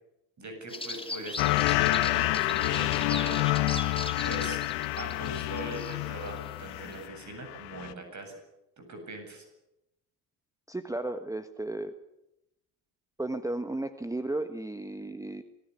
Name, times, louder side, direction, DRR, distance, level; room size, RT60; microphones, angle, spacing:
voice 1, 0.4-3.5 4.2-4.6 5.0-8.4 8.8-9.5, right 2 dB, 35° right, 6 dB, 8.0 m, -41 dB
sound 1, 0.7-7.1, left 2 dB, 10° left, 2.9 m, -40 dB
sound 2, 1.4-7.2 7.5-7.9, left 18 dB, 65° left, 1.3 m, -28 dB
voice 2, 10.7-11.9 13.2-15.4, right 2 dB, 5° right, 10 dB, 1.3 m, -34 dB
25.5 x 14.5 x 9.7 m, 0.89 s
hypercardioid pair, 70°, 46 cm